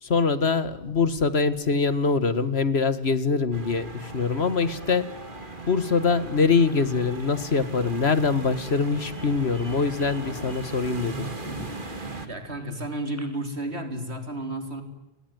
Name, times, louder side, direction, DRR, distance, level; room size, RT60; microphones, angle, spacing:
voice 1, 0.0-5.1 5.7-11.4, left 4 dB, 70° left, 2.0 m, -24 dB
sound 1, 3.5-12.3, right 2 dB, 50° right, 2.6 m, -38 dB
sound 2, 5.1-13.4, equal, 15° left, 7.8 m, -48 dB
voice 2, 12.3-14.8, right 1 dB, 75° right, 4.3 m, -32 dB
30.0 x 21.5 x 9.4 m
omnidirectional pair, 1.1 m